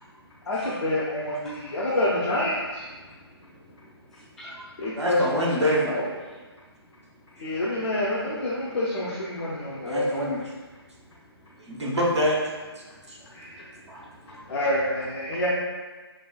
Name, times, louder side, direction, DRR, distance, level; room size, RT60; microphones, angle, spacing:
voice 1, 0.5-2.6 4.8-5.5 5.9-6.0 7.4-10.3 14.5-15.5, left 1 dB, 70° left, -7 dB, 0.8 m, -27 dB
voice 2, 2.7-3.1 3.4-4.7 7.7-7.8 13.7-14.6, equal, ahead, -9 dB, 0.4 m, -48 dB
voice 3, 5.0-5.9 9.8-10.4 11.6-12.4 13.1-13.2 13.9-14.1, equal, 90° right, -3 dB, 1.1 m, -25 dB
5.0 x 2.3 x 2.4 m, 1.3 s
figure-of-eight pair, 145°, 14 cm